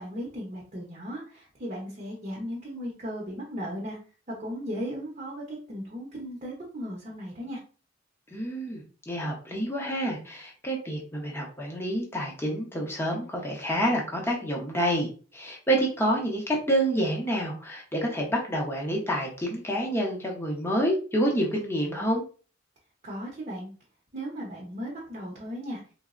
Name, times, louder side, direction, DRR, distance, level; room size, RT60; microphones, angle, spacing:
voice 1, 0.0-4.0 4.3-7.6 23.0-23.7 24.1-25.8, equal, 35° right, -3 dB, 0.7 m, -36 dB
voice 2, 8.3-22.2, right 1 dB, 10° left, -2 dB, 0.7 m, -28 dB
3.3 x 2.0 x 2.4 m, 0.38 s
head